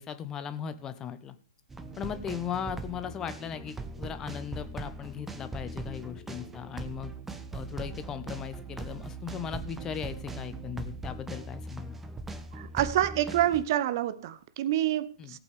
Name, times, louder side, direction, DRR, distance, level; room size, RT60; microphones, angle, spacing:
voice 1, 0.0-1.3 2.0-7.1 7.5-12.0 15.2-15.4, left 8 dB, 20° left, 1.2 m, -38 dB
sound 1, 1.7-13.7, right 3 dB, 10° right, 1.3 m, -40 dB
voice 2, 12.5-15.4, right 13 dB, 45° right, 0.9 m, -27 dB
18.0 x 8.8 x 3.6 m
figure-of-eight pair, 115°, 3 cm